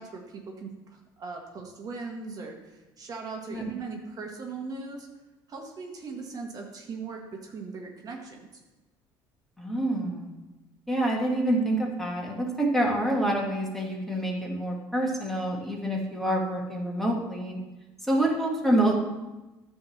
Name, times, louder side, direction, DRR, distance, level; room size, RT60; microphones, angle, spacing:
voice 1, 0.0-5.1 5.5-8.5, right 4 dB, 45° right, 1 dB, 1.4 m, -39 dB
voice 2, 9.6-10.3 10.9-17.6 18.0-19.0, right 1 dB, 5° left, -1 dB, 1.7 m, -27 dB
10.5 x 3.5 x 7.1 m, 1.1 s
cardioid pair, 110°, 9 cm